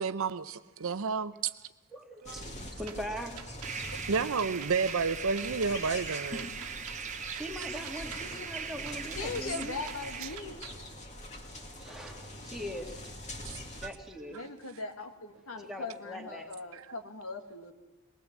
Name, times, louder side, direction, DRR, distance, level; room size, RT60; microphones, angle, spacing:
voice 1, 0.0-1.5 2.2-2.4 4.1-6.7 7.3-7.4 10.2-10.3 13.5-13.6 16.7-16.8, right 5 dB, 65° right, 0.7 m, -31 dB
voice 2, 1.9-3.3 3.7-4.0 7.2-9.8 10.2-10.6 11.8-14.5 15.6-16.5, equal, ahead, 2.2 m, -42 dB
sound 1, 2.2-13.9, left 1 dB, 35° left, 2.4 m, -44 dB
sound 2, 2.9-10.8, right 8 dB, 85° right, 1.3 m, -49 dB
sound 3, 3.6-10.4, right 7 dB, 35° right, 1.1 m, -40 dB
voice 3, 9.2-10.6 14.3-17.7, left 3 dB, 70° left, 1.8 m, -39 dB
21.0 x 19.0 x 7.4 m
head